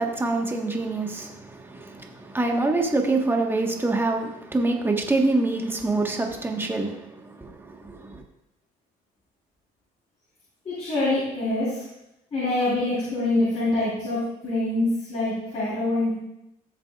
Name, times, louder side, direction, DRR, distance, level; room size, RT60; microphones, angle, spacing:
voice 1, 0.0-8.2, right 2 dB, 15° right, 2 dB, 1.3 m, -26 dB
voice 2, 10.7-11.8 12.3-16.2, left 2 dB, 40° left, -9 dB, 3.8 m, -25 dB
15.5 x 6.7 x 2.4 m, 0.84 s
cardioid pair, 110°, 17 cm